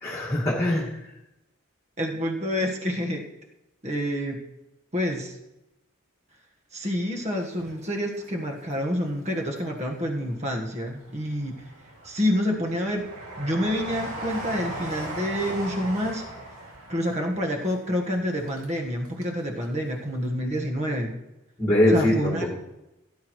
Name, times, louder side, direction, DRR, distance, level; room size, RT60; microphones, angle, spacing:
voice 1, 0.0-1.0 21.6-22.5, left 1 dB, 15° left, -5 dB, 1.9 m, -22 dB
voice 2, 2.0-3.2 3.8-4.4 4.9-5.4 6.7-11.6 12.0-13.0 13.4-16.2 16.9-21.2 21.9-22.5, equal, 30° right, 1 dB, 1.3 m, -28 dB
Train, 7.4-8.7 9.1-10.1 10.6-19.4 19.6-19.7, right 1 dB, 85° right, 2.4 m, -39 dB
16.5 x 11.0 x 3.1 m, 0.94 s
head